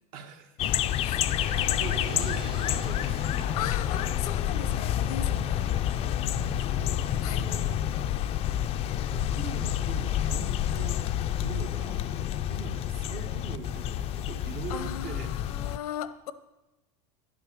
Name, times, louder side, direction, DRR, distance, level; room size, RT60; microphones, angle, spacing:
voice 1, 0.1-0.6 1.4-3.2 4.6-4.8 6.3-8.0 8.6-8.7 9.0-11.1 11.4-15.3, right 6 dB, 50° right, 6 dB, 1.5 m, -42 dB
sound 1, 0.6-15.8, left 11 dB, 30° left, 0.4 m, -29 dB
voice 2, 1.0-1.5 3.6-5.6 7.2-7.5 14.7-16.3, left 10 dB, 90° left, 14 dB, 0.8 m, -37 dB
sound 2, 1.2-7.1, right 4 dB, 30° right, 1.5 m, -45 dB
11.0 x 8.6 x 6.1 m, 1.1 s
supercardioid pair, 145°, 19 cm